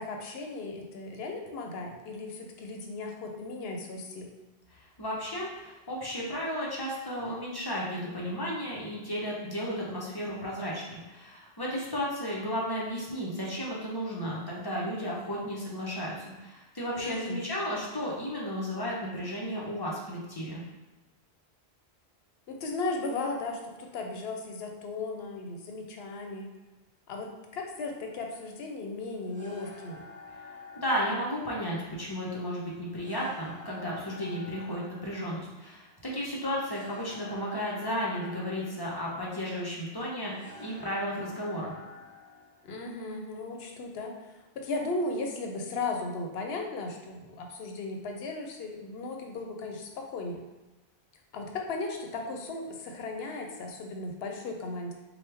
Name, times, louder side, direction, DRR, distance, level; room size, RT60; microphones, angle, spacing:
voice 1, 0.0-4.3 17.0-17.4 22.5-26.5 27.1-30.0 42.6-50.4 51.3-54.9, left 3 dB, 75° left, 2 dB, 0.8 m, -36 dB
voice 2, 5.0-20.6 30.8-41.7, equal, 25° left, -4 dB, 0.7 m, -34 dB
sound 1, 27.7-42.9, left 3 dB, 40° right, 0.8 m, -50 dB
4.4 x 2.3 x 3.3 m, 1.1 s
omnidirectional pair, 1.1 m